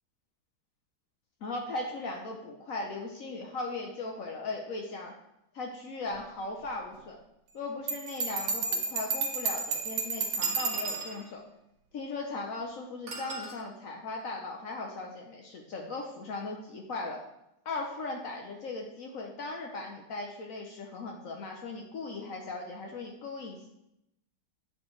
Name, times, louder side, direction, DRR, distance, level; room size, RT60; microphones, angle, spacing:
voice 1, 1.4-5.1 5.5-7.2 7.5-11.4 11.9-17.2 17.6-23.8, left 3 dB, 80° left, 1 dB, 0.7 m, -38 dB
Bell, 7.9-11.1, right 4 dB, 85° right, 1.8 m, -31 dB
sound 1, 9.4-9.5 10.4-11.3 13.1-13.6, right 4 dB, 65° right, 2.2 m, -39 dB
8.8 x 4.3 x 3.2 m, 0.83 s
omnidirectional pair, 2.4 m